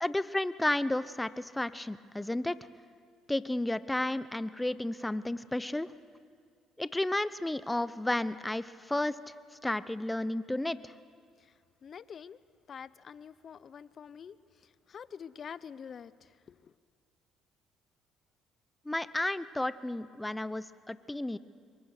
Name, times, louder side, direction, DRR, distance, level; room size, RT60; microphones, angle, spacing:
voice 1, 0.0-2.6 3.3-5.9 6.8-9.2 9.6-10.9 18.9-21.4, left 1 dB, 10° left, 15 dB, 0.9 m, -32 dB
voice 2, 11.8-12.4 12.7-16.7, left 7 dB, 50° left, 17 dB, 0.7 m, -47 dB
26.5 x 23.0 x 6.7 m, 2.2 s
supercardioid pair, 75°, 0 cm